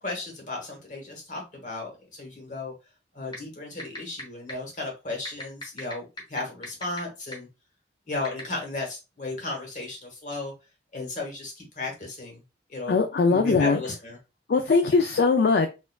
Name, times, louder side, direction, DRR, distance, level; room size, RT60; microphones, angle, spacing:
voice 1, 0.0-2.7 3.1-7.5 8.1-10.5 10.9-12.4 12.7-13.0 13.3-14.2, left 2 dB, 40° left, 0 dB, 1.2 m, -34 dB
sound 1, 3.3-3.4 3.8-4.2 4.5-4.6 5.2-7.0 7.3-7.4 8.2-8.4, left 1 dB, 25° left, 1.0 m, -35 dB
voice 2, 12.9-13.8 14.5-15.7, left 4 dB, 55° left, 5 dB, 0.3 m, -21 dB
4.2 x 2.4 x 2.3 m, 0.27 s
head